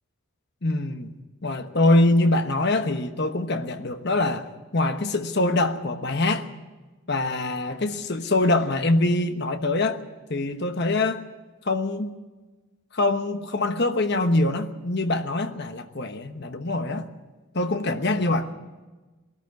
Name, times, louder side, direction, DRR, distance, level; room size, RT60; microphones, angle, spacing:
voice 1, 0.6-1.1 1.4-6.5 7.1-10.0 10.3-11.2 11.7-12.1 12.9-17.1 17.5-18.5, left 2 dB, 50° left, 8 dB, 1.1 m, -24 dB
21.0 x 13.5 x 9.4 m, 1.2 s
head